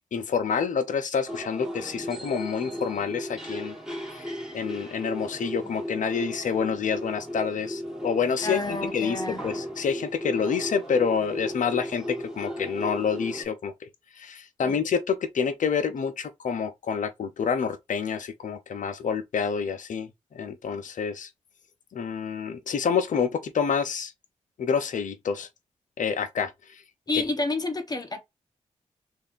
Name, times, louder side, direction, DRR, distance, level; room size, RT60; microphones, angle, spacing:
voice 1, 0.1-3.7 4.1-13.9 14.1-21.3 21.9-24.1 24.6-25.5 26.0-26.8, left 6 dB, 75° left, 0.8 m, -28 dB
sound 1, 1.3-13.4, equal, 5° right, 2.1 m, -36 dB
voice 2, 8.4-9.4 14.6-14.8 27.1-28.2, left 3 dB, 30° left, 1.3 m, -29 dB
3.3 x 2.8 x 4.1 m
supercardioid pair, 40°, 13 cm